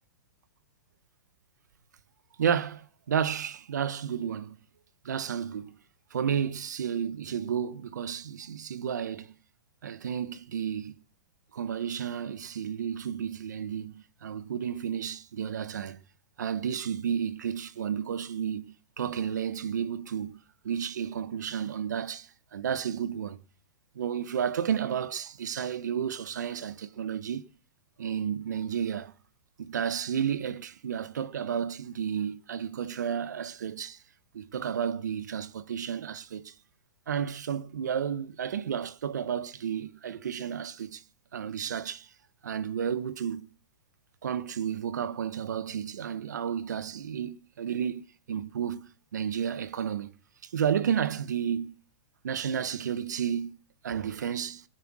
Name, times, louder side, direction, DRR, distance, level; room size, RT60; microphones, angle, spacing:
voice 1, 2.4-4.6 5.0-5.7 6.1-9.3 9.8-10.9 11.5-16.0 16.4-18.6 19.0-20.4 20.6-23.4 23.9-27.4 28.0-29.1 29.6-34.0 34.3-36.5 37.1-41.0 41.3-42.1 42.4-43.5 44.2-48.0 48.3-50.1 50.4-51.7 52.2-53.6 53.8-54.6, right 8 dB, 80° right, 1.4 m, -32 dB
21.5 x 8.2 x 6.4 m
hypercardioid pair, 180°, 9 cm